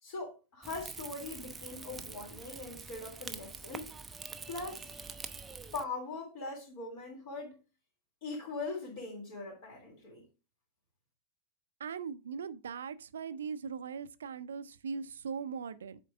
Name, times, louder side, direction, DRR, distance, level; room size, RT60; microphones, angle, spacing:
voice 1, 0.0-3.9 4.5-4.9 5.7-7.5 8.2-10.2, left 3 dB, 45° left, 3.3 m, -41 dB
Rain / Fire, 0.6-5.8, right 4 dB, 15° right, 0.6 m, -45 dB
voice 2, 11.8-16.0, right 6 dB, 65° right, 0.5 m, -40 dB
8.1 x 4.5 x 3.4 m
figure-of-eight pair, 90°, 0 cm